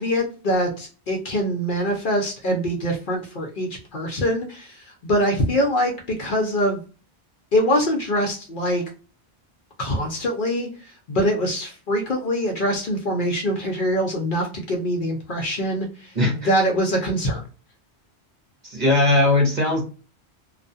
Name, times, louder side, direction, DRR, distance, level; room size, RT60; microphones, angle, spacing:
voice 1, 0.0-6.8 7.5-8.8 9.8-17.4, equal, 55° left, 1 dB, 0.7 m, -24 dB
voice 2, 16.2-16.5 18.6-19.8, left 2 dB, 45° right, -1 dB, 0.9 m, -19 dB
2.4 x 2.3 x 2.5 m, 0.35 s
omnidirectional pair, 1.2 m